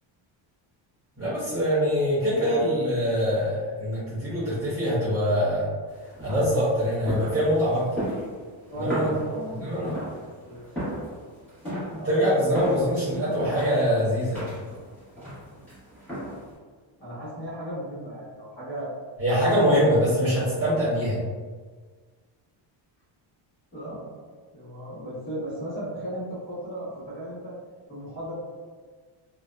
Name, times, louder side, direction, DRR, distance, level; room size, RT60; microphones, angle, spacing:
voice 1, 1.2-5.7 6.2-8.0 8.8-9.1 9.6-9.9 12.1-14.5 19.2-21.2, equal, 30° right, -11 dB, 1.0 m, -24 dB
sound 1, 5.9-16.6, equal, 5° left, 1.0 m, -36 dB
voice 2, 8.7-10.7 12.0-12.2 12.5-12.7 13.1-13.6 17.0-18.9 19.4-20.2 20.6-20.8 23.7-24.1 24.5-27.6 27.9-28.3, right 1 dB, 25° left, -12 dB, 1.2 m, -35 dB
2.6 x 2.1 x 2.2 m, 1.5 s
cardioid pair, 170°, 48 cm